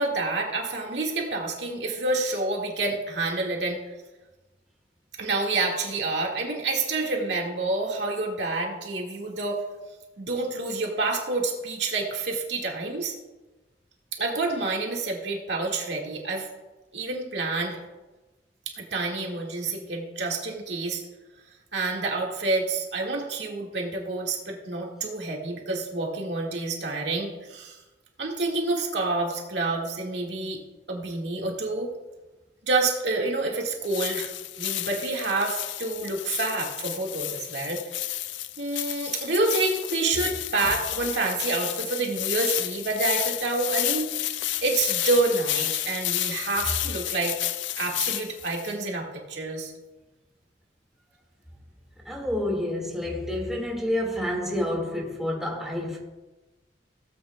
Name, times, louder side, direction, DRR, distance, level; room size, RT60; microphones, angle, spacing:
voice 1, 0.0-3.8 5.2-9.6 10.2-13.1 14.1-16.5 16.9-17.8 18.7-21.0 21.7-27.8 28.2-30.6 30.9-31.9 32.7-34.3 34.6-38.1 38.6-44.1 44.6-47.3 47.8-49.7, right 3 dB, 75° right, 1.8 m, -28 dB
sound 1, 33.8-48.7, left 14 dB, 85° left, 0.4 m, -31 dB
voice 2, 52.1-56.0, left 1 dB, 5° right, 1.9 m, -29 dB
17.0 x 8.6 x 2.3 m
head